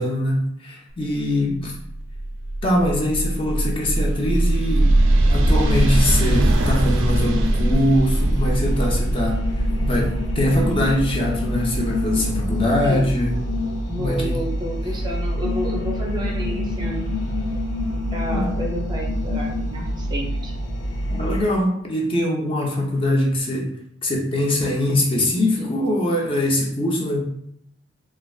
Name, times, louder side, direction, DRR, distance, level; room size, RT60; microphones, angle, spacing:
voice 1, 0.0-1.8 2.6-4.9 5.3-9.4 9.8-13.4 14.0-14.4 18.3-18.4 21.1-23.7 24.0-27.2, left 1 dB, 30° left, -1 dB, 0.5 m, -22 dB
sound 1, 1.7-12.4, right 1 dB, 85° right, 0.4 m, -21 dB
sound 2, 7.9-21.4, left 1 dB, 70° left, 0.6 m, -26 dB
voice 2, 13.9-17.1 18.1-20.5, equal, 20° right, -1 dB, 0.5 m, -30 dB
3.2 x 2.3 x 2.3 m, 0.70 s
head